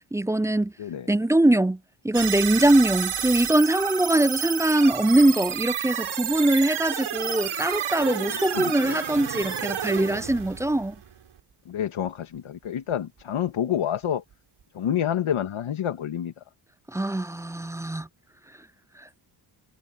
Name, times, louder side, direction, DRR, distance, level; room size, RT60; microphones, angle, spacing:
voice 1, 0.1-0.7 1.1-1.8 2.0-11.0 16.9-18.1, right 1 dB, 5° right, 0.4 m, -22 dB
voice 2, 0.8-1.1 8.5-9.0 11.7-14.2 14.7-16.3, left 9 dB, 75° left, 2.3 m, -28 dB
sound 1, 2.1-11.4, right 9 dB, 75° right, 4.7 m, -31 dB
cardioid pair, 65°, 49 cm